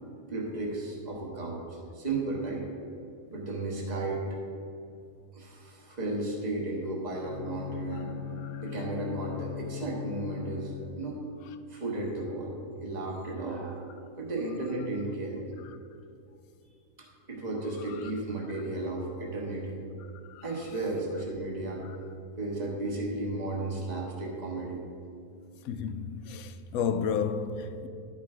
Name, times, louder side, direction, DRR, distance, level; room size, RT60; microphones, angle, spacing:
voice 1, 0.3-2.7 3.3-4.3 5.3-8.2 8.6-11.2 11.7-12.5 12.8-13.9 14.2-15.4 17.0-19.8 20.4-21.8 22.4-24.8, right 2 dB, 30° right, 1.3 m, -34 dB
Bowed string instrument, 7.1-11.2, left 9 dB, 50° left, 0.9 m, -39 dB
voice 2, 25.6-27.9, left 6 dB, 80° left, 1.0 m, -32 dB
11.0 x 4.9 x 4.8 m
omnidirectional pair, 1.5 m